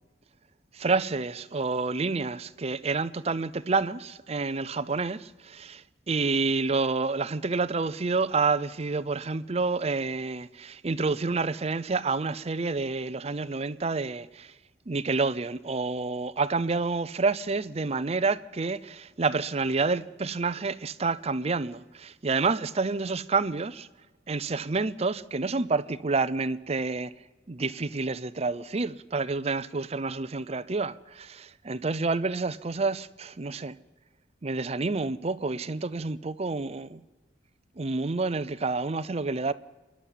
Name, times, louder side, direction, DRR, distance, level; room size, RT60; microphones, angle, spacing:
voice 1, 0.7-14.5 14.9-23.9 24.3-27.1 27.5-33.8 34.4-37.0 37.8-39.5, right 3 dB, 35° right, 0.6 m, -29 dB
27.0 x 11.5 x 9.1 m
head